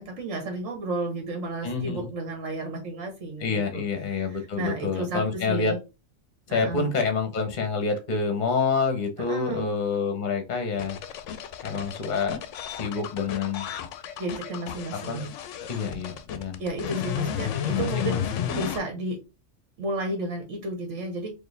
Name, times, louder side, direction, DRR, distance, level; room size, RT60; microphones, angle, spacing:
voice 1, 0.0-3.8 4.3-5.2 5.5-5.8 6.5-6.9 9.3-9.7 14.2-15.3 16.6-19.2 19.8-21.3, right 2 dB, 70° right, 3 dB, 1.4 m, -32 dB
voice 2, 1.6-2.1 3.4-5.7 6.5-11.0 11.6-12.4 12.8-13.7 14.9-15.2 15.7-16.6 17.7-18.5, left 5 dB, 40° left, 6 dB, 0.9 m, -27 dB
sound 1, 10.8-18.8, left 9 dB, 70° left, 0.9 m, -33 dB
4.4 x 2.7 x 3.3 m, 0.28 s
omnidirectional pair, 1.3 m